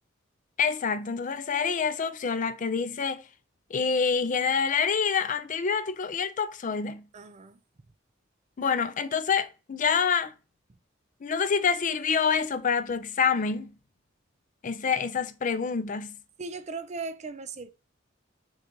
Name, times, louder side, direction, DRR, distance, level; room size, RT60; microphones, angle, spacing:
voice 1, 0.6-3.2 3.7-7.0 8.6-10.3 11.2-13.7 14.6-16.2, left 6 dB, 40° left, 0.4 m, -27 dB
voice 2, 7.1-7.6 16.4-17.7, right 4 dB, 35° right, 0.5 m, -37 dB
6.4 x 2.4 x 2.9 m
head